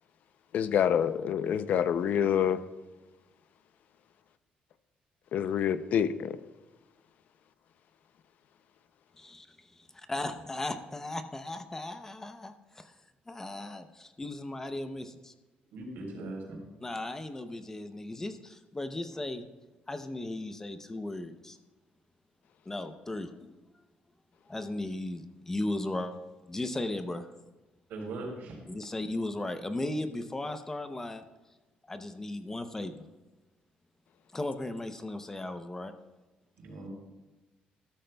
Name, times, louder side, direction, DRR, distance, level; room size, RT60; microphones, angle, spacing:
voice 1, 0.5-2.6 5.3-6.4, left 8 dB, 60° left, 13 dB, 0.5 m, -27 dB
voice 2, 9.2-12.9 13.3-15.3 16.8-19.5 19.9-21.6 22.7-23.5 24.5-26.1 26.5-27.3 28.7-31.2 31.9-33.1 34.3-35.9, left 2 dB, 15° left, 9 dB, 0.6 m, -36 dB
voice 3, 15.7-16.6 27.9-28.6 36.6-36.9, right 2 dB, 85° right, 0 dB, 3.8 m, -39 dB
13.0 x 13.0 x 2.3 m, 1.1 s
cardioid pair, 135°, 3 cm